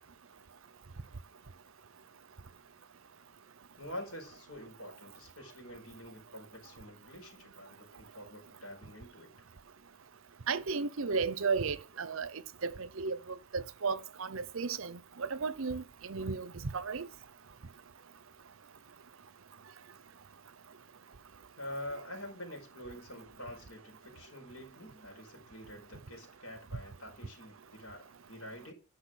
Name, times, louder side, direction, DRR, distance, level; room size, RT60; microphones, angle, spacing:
voice 1, 3.8-9.3 21.6-28.7, left 1 dB, 90° left, 5.1 m, -46 dB
voice 2, 10.5-17.1, right 5 dB, 70° right, 0.7 m, -34 dB
10.5 x 6.1 x 6.2 m
head